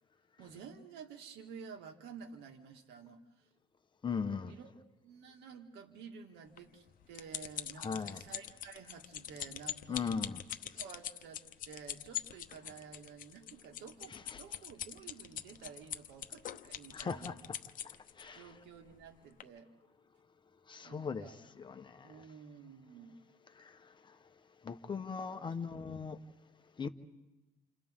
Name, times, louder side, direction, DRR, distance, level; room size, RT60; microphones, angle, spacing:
voice 1, 0.4-3.5 4.5-4.7 5.0-10.3 10.7-17.4 18.3-19.7 20.8-21.4 22.0-23.2 25.4-25.5 25.9-26.0, right 6 dB, 85° right, 2.2 m, -52 dB
voice 2, 4.0-4.6 7.8-8.2 9.9-10.4 14.1-14.4 16.9-17.4 18.2-18.5 20.7-22.1 24.6-26.2 26.8-26.9, left 5 dB, 30° left, 1.2 m, -39 dB
sound 1, 6.6-18.2 18.9-19.1 19.4-19.5, left 11 dB, 55° left, 0.9 m, -43 dB
29.0 x 28.5 x 3.8 m
cardioid pair, 110°, 17 cm